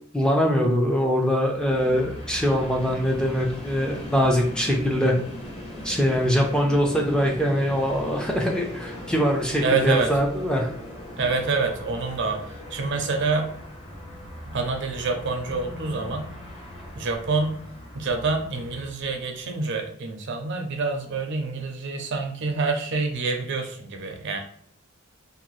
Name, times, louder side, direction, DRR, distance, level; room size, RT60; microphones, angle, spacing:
voice 1, 0.1-5.1 5.8-10.7, equal, 5° left, 0 dB, 0.4 m, -23 dB
Train, 1.4-19.5, left 1 dB, 30° left, 0.7 m, -39 dB
voice 2, 9.6-10.1 11.2-13.5 14.5-16.3 16.9-17.6 17.9-24.4, right 4 dB, 60° right, 4 dB, 0.5 m, -27 dB
2.6 x 2.2 x 3.0 m, 0.64 s
head